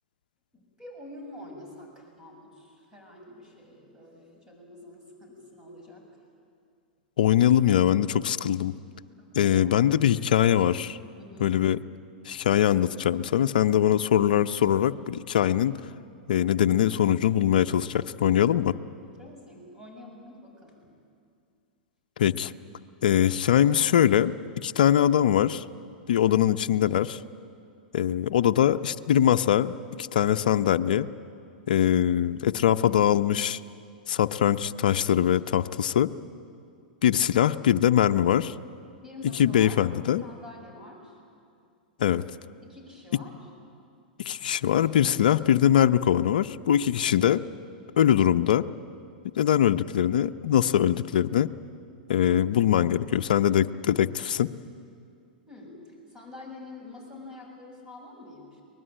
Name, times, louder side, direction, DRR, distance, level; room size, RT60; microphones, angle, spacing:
voice 1, 0.5-6.2 9.2-10.0 11.2-11.6 18.6-18.7 19.0-20.8 36.8-36.9 39.0-41.2 42.6-43.4 55.5-58.6, left 2 dB, 15° right, 0 dB, 7.1 m, -46 dB
voice 2, 7.2-8.7 9.3-11.0 11.4-11.8 12.3-15.8 16.3-18.7 22.2-22.5 23.0-24.3 24.6-25.6 26.1-27.2 27.9-31.1 31.7-33.6 34.1-36.1 37.0-38.5 39.4-40.2 42.0-42.2 44.2-47.4 48.0-48.6 49.4-51.5 52.1-54.5, left 10 dB, 70° left, 10 dB, 0.6 m, -22 dB
23.5 x 20.0 x 9.0 m, 2.3 s
hypercardioid pair, 105°, 5 cm